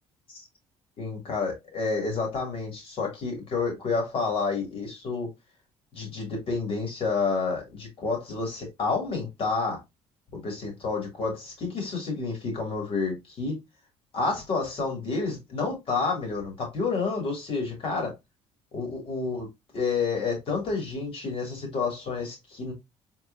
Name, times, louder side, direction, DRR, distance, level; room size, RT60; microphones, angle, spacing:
voice 1, 1.0-5.3 5.9-9.8 10.3-13.5 14.1-18.1 18.7-19.5 19.7-22.7, left 4 dB, 55° left, 2.7 m, -29 dB
4.2 x 4.1 x 2.6 m
cardioid pair, 100°, 12 cm